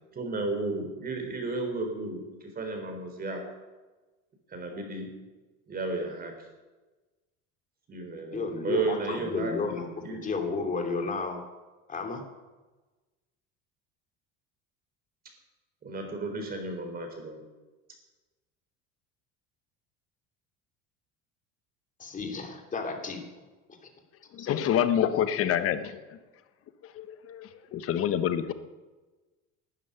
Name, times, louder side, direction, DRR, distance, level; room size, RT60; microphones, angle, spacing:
voice 1, 0.1-3.4 4.5-5.1 5.7-6.3 7.9-10.3 15.2-15.3 15.8-17.4, right 3 dB, 30° right, 4 dB, 4.0 m, -33 dB
voice 2, 8.2-9.9 10.2-11.4 11.9-12.2 22.0-23.3 23.7-23.8 24.4-24.5, left 4 dB, 25° left, 3 dB, 2.9 m, -32 dB
voice 3, 24.3-26.2 26.8-28.5, left 9 dB, 50° left, 11 dB, 1.3 m, -27 dB
12.5 x 9.7 x 9.9 m, 1.2 s
cardioid pair, 120°, 30 cm